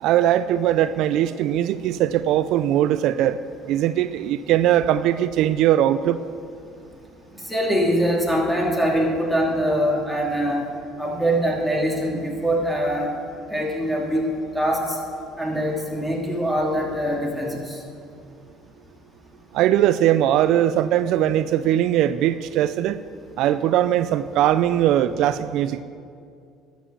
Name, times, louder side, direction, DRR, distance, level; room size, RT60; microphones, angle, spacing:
voice 1, 0.0-3.4 3.7-6.2 19.5-23.0 23.4-25.8, right 12 dB, 70° right, 13 dB, 0.3 m, -20 dB
voice 2, 7.5-10.6 11.0-13.1 13.5-14.3 14.5-15.0 15.4-17.8, equal, ahead, -2 dB, 2.9 m, -23 dB
11.5 x 7.2 x 7.3 m, 2.4 s
supercardioid pair, 85°, 0 cm